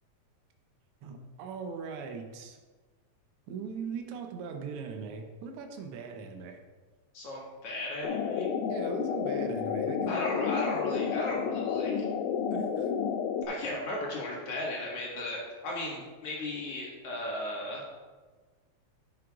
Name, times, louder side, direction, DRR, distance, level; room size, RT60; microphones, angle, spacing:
voice 1, 1.0-2.6 3.5-6.6 8.7-10.5 12.5-12.9, right 5 dB, 70° right, 4 dB, 1.5 m, -40 dB
voice 2, 7.1-8.5 10.1-12.0 13.5-17.8, left 1 dB, 55° left, -4 dB, 2.6 m, -35 dB
sound 1, 8.0-13.5, left 7 dB, 90° left, 2.0 m, -31 dB
9.9 x 7.8 x 2.4 m, 1.3 s
omnidirectional pair, 3.3 m